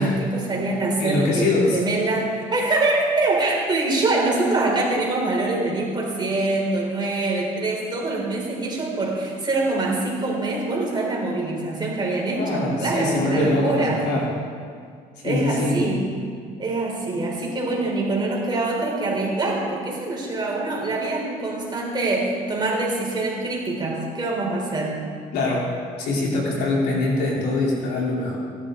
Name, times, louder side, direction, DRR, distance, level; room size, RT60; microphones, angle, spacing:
voice 1, 0.0-14.0 15.2-16.0 16.6-25.0, right 2 dB, 25° right, -3 dB, 3.8 m, -24 dB
voice 2, 1.0-1.8 12.3-14.3 15.2-15.8 25.3-25.7 26.0-28.4, left 2 dB, 80° left, -4 dB, 3.4 m, -23 dB
17.5 x 10.5 x 3.8 m, 2.1 s
cardioid pair, 110°, 17 cm